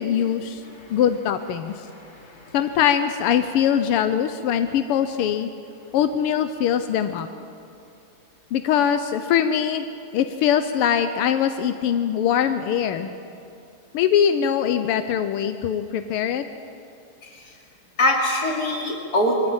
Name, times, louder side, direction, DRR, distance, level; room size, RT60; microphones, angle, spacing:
voice 1, 0.0-0.6 0.9-1.7 2.5-5.5 5.9-7.3 8.5-9.8 10.1-13.2 13.9-16.5, left 9 dB, 85° left, 9 dB, 1.7 m, -22 dB
voice 2, 1.9-2.6 17.2-17.5 18.0-19.5, left 1 dB, 45° left, 0 dB, 3.3 m, -24 dB
22.5 x 15.0 x 8.9 m, 2.6 s
omnidirectional pair, 2.4 m